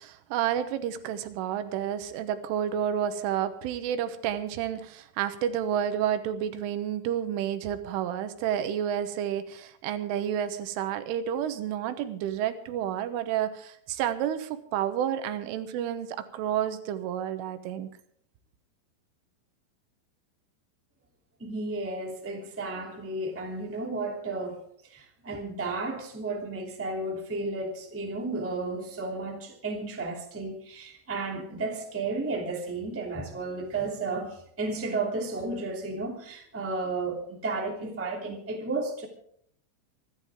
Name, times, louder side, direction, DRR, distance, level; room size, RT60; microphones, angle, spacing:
voice 1, 0.0-16.1 16.3-17.9, right 10 dB, 80° right, 3.6 m, -30 dB
voice 2, 21.4-39.1, right 3 dB, 5° right, 1.2 m, -33 dB
26.0 x 12.0 x 3.7 m
omnidirectional pair, 5.7 m